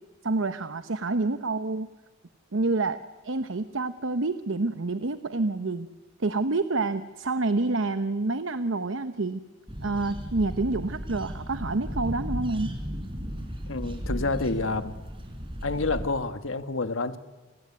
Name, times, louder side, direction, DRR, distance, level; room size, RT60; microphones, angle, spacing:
voice 1, 0.2-1.9 2.5-5.9 6.2-9.4 9.8-12.7, right 3 dB, 70° right, 11 dB, 0.9 m, -28 dB
sound 1, 9.7-16.1, equal, 25° right, 3.9 m, -35 dB
voice 2, 13.7-15.0 15.6-17.2, left 3 dB, 75° left, 10 dB, 1.5 m, -28 dB
30.0 x 20.0 x 9.7 m, 1.3 s
head